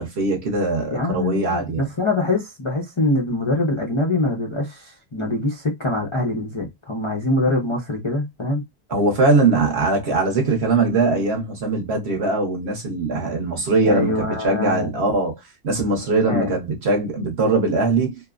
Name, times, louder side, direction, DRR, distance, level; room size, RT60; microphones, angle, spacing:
voice 1, 0.0-1.9 8.9-15.4 15.6-18.3, right 3 dB, 55° right, 0.9 m, -21 dB
voice 2, 0.9-8.6 13.8-14.9 16.2-16.5, left 2 dB, 45° left, 0.4 m, -24 dB
2.9 x 2.0 x 2.3 m
omnidirectional pair, 1.6 m